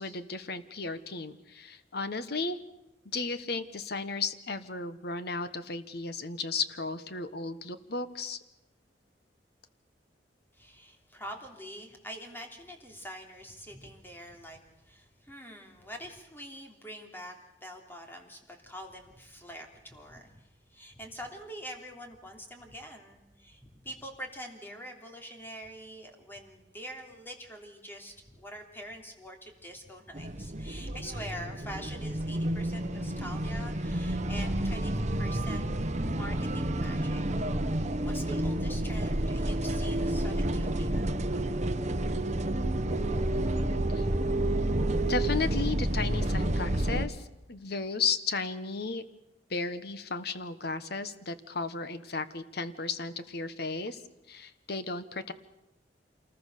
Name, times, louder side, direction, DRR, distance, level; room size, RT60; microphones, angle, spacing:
voice 1, 0.0-2.6 3.1-8.4 43.9-44.1 45.1-49.0 49.5-54.0 54.3-55.3, left 4 dB, 65° left, 12 dB, 1.3 m, -34 dB
voice 2, 10.5-17.4 17.6-35.7 36.2-37.3 38.0-41.1 44.4-44.5, equal, 10° left, 3 dB, 3.3 m, -45 dB
sound 1, 30.1-47.1, right 1 dB, 40° right, 1.2 m, -30 dB
27.5 x 20.0 x 6.8 m, 0.93 s
head